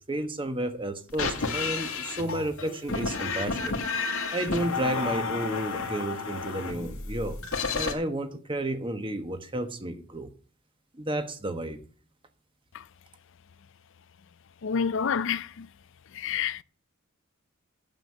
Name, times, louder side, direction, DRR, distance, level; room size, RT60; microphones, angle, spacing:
voice 1, 0.1-3.7 4.3-7.4 7.7-10.3 10.9-11.8, right 1 dB, 25° right, 1.2 m, -32 dB
sound 1, 1.1-7.9, left 4 dB, 85° left, 1.9 m, -31 dB
voice 2, 14.6-15.7 16.2-16.6, left 6 dB, 60° left, 0.5 m, -28 dB
9.0 x 7.8 x 6.5 m
head